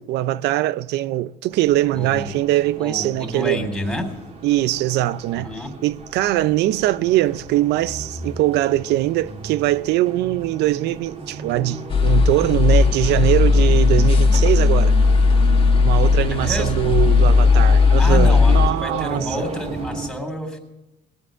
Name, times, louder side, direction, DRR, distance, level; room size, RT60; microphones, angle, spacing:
voice 1, 0.0-3.7 4.4-5.5 5.8-14.9 15.8-19.3, right 15 dB, 80° right, 0.5 m, -21 dB
sound 1, 1.5-20.1, right 2 dB, 40° right, 2.6 m, -35 dB
voice 2, 1.9-2.3 2.8-4.1 5.3-5.7 16.3-17.0 18.0-20.6, left 1 dB, ahead, 3.5 m, -29 dB
sound 2, 11.9-18.7, left 4 dB, 30° left, 1.3 m, -16 dB
20.0 x 8.0 x 8.8 m
cardioid pair, 110°, 17 cm